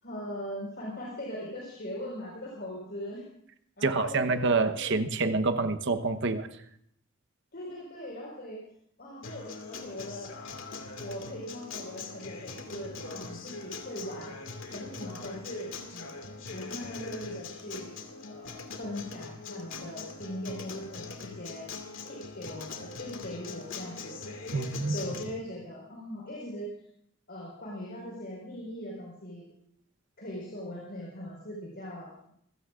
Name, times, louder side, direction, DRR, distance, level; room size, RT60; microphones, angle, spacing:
voice 1, 0.0-3.2 3.8-5.1 7.5-8.6 9.0-10.3 11.0-14.3 14.7-16.2 16.5-18.0 18.2-21.7 22.0-24.1 24.9-26.7 27.3-29.5 30.2-32.3, equal, 55° left, -4 dB, 4.8 m, -40 dB
voice 2, 3.8-6.5 24.5-25.0, right 3 dB, 65° right, 8 dB, 1.0 m, -27 dB
Acoustic guitar, 9.2-25.2, left 4 dB, 75° left, 2.1 m, -42 dB
26.5 x 16.0 x 2.5 m, 0.68 s
head